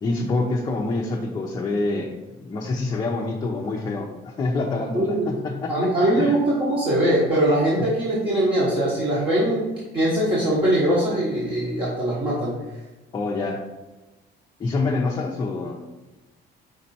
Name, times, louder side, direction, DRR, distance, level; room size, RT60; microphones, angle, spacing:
voice 1, 0.0-2.1 2.4-5.9 6.2-6.4 13.1-13.6 14.6-15.8, left 3 dB, 20° left, -2 dB, 0.6 m, -26 dB
voice 2, 4.9-5.3 5.7-9.7 9.9-12.5, right 1 dB, 25° right, -7 dB, 1.2 m, -21 dB
5.2 x 4.3 x 4.2 m, 1.1 s
cardioid pair, 175°, 19 cm